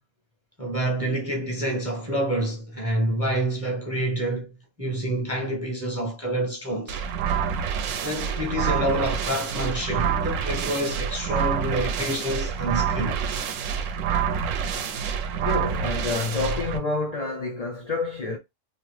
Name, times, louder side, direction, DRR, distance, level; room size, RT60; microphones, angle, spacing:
voice 1, 0.6-4.5 4.8-7.0 7.4-7.5 8.0-13.2, right 1 dB, 20° right, 0.5 m, -27 dB
sound 1, 6.9-16.8, right 7 dB, 85° right, 0.9 m, -27 dB
voice 2, 15.4-18.4, left 3 dB, 55° left, 0.4 m, -28 dB
2.9 x 2.0 x 3.1 m
omnidirectional pair, 1.3 m